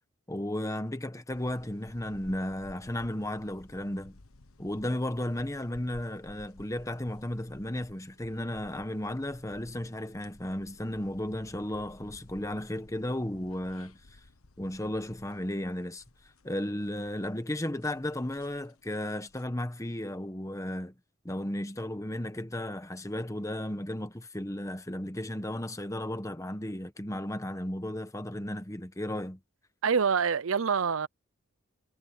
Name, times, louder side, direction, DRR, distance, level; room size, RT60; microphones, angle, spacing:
voice 1, 0.3-4.2 4.6-14.0 14.6-16.0 16.4-20.9 21.2-29.4, left 1 dB, 15° left, 1.1 m, -34 dB
sound 1, 1.3-19.4, left 2 dB, 80° left, 1.3 m, -56 dB
voice 2, 29.8-31.1, right 6 dB, 70° right, 0.6 m, -26 dB
head